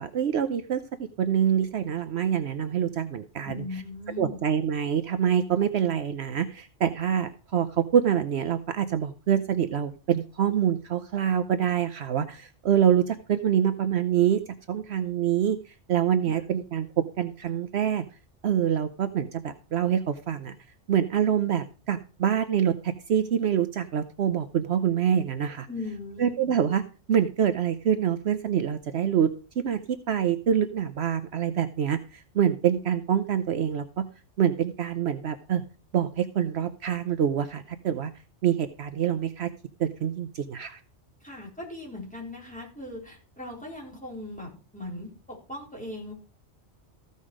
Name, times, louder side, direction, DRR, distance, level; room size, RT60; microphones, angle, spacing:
voice 1, 0.0-3.6 4.2-14.4 14.7-16.9 17.2-18.0 18.4-20.5 20.9-25.7 26.2-26.8 27.1-29.3 29.6-34.0 34.4-35.6 35.9-38.1 38.4-39.5 39.8-40.8, right 9 dB, 65° right, 10 dB, 0.9 m, -26 dB
voice 2, 3.4-4.4 16.2-16.4 25.7-26.6 41.2-46.1, left 2 dB, 5° left, -3 dB, 4.1 m, -39 dB
15.0 x 5.4 x 5.0 m, 0.35 s
omnidirectional pair, 1.2 m